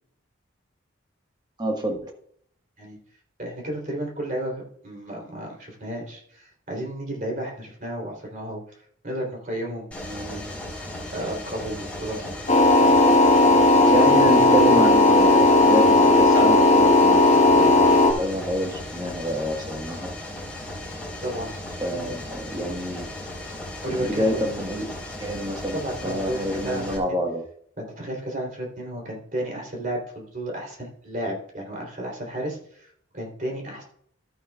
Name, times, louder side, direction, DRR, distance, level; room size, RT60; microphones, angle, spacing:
voice 1, 1.6-2.1 13.9-20.1 21.8-23.1 24.0-27.4, equal, 20° right, 2 dB, 1.5 m, -27 dB
voice 2, 3.4-8.8 9.0-10.4 11.1-12.3 21.2-21.5 21.9-22.0 23.8-24.5 25.7-27.2 27.8-33.8, right 1 dB, 40° right, -1 dB, 3.5 m, -32 dB
Mechanisms, 9.9-27.0, left 1 dB, 5° left, 3.6 m, -36 dB
sound 1, 12.5-18.1, left 2 dB, 35° left, 1.1 m, -16 dB
14.0 x 8.6 x 2.4 m, 0.66 s
head